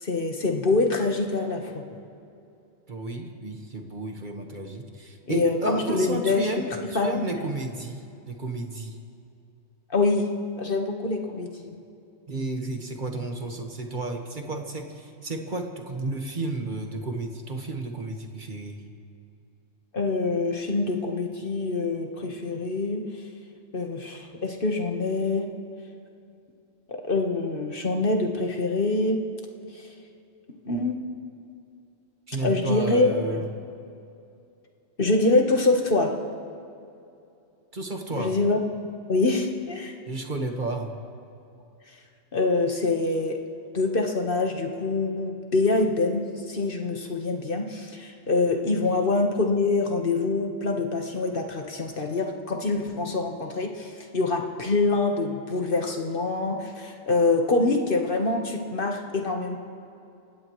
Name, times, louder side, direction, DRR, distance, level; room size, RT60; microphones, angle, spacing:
voice 1, 0.0-1.8 5.3-6.5 6.9-7.5 9.9-10.3 10.6-11.8 19.9-23.0 23.7-25.5 26.9-29.2 29.7-29.9 30.6-31.0 32.4-33.2 35.0-36.1 38.2-38.6 39.1-40.0 42.3-43.4 43.7-59.6, left 3 dB, 45° left, 3 dB, 1.4 m, -25 dB
voice 2, 2.9-9.0 12.3-18.8 32.3-33.5 37.7-38.4 40.1-40.9, right 2 dB, 35° right, 3 dB, 1.5 m, -32 dB
28.0 x 16.0 x 3.1 m, 2.7 s
omnidirectional pair, 1.4 m